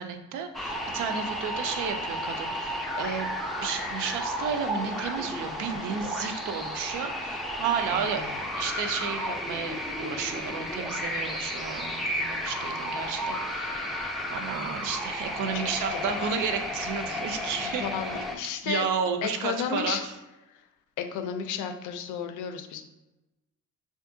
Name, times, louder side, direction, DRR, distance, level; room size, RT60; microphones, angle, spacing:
voice 1, 0.0-3.3 3.6-8.3 8.5-17.9 18.1-18.3 18.6-20.2, right 6 dB, 85° right, 7 dB, 0.5 m, -32 dB
sound 1, 0.5-18.4, equal, ahead, 0.4 m, -33 dB
voice 2, 15.5-16.3 17.1-17.2 17.8-18.9 19.2-20.0 21.0-22.9, left 7 dB, 85° left, 7 dB, 0.4 m, -33 dB
3.5 x 2.5 x 2.6 m, 1.0 s
cardioid pair, 90°, 30 cm